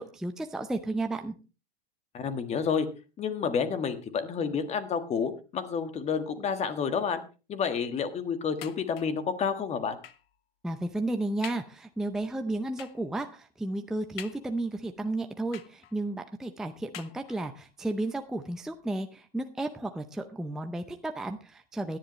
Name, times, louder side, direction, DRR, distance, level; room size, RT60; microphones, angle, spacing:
voice 1, 0.0-1.3 10.6-22.0, right 2 dB, ahead, 6 dB, 0.6 m, -33 dB
voice 2, 2.1-2.9 3.2-7.2 7.5-10.0, left 6 dB, 20° left, 10 dB, 1.6 m, -30 dB
sound 1, 8.6-9.3 10.0-10.4 10.9-11.0 11.4-11.8 12.8-13.1 14.2-14.8 15.5-16.1 16.9-17.6 18.4-18.5 18.9-19.0, left 11 dB, 70° left, 1.3 m, -46 dB
17.0 x 11.0 x 3.1 m, 0.31 s
hypercardioid pair, 135°, 30 cm